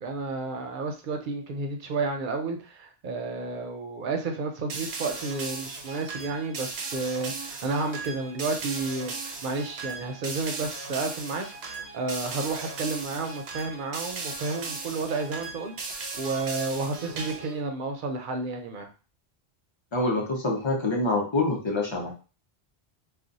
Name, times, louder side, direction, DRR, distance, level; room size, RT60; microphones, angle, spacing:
voice 1, 0.0-18.9, right 3 dB, 60° right, 4 dB, 0.6 m, -31 dB
sound 1, 4.7-17.6, right 4 dB, 90° right, 0.9 m, -37 dB
voice 2, 19.9-22.1, left 2 dB, 30° left, -1 dB, 0.7 m, -26 dB
2.4 x 2.3 x 3.9 m, 0.35 s
omnidirectional pair, 1.1 m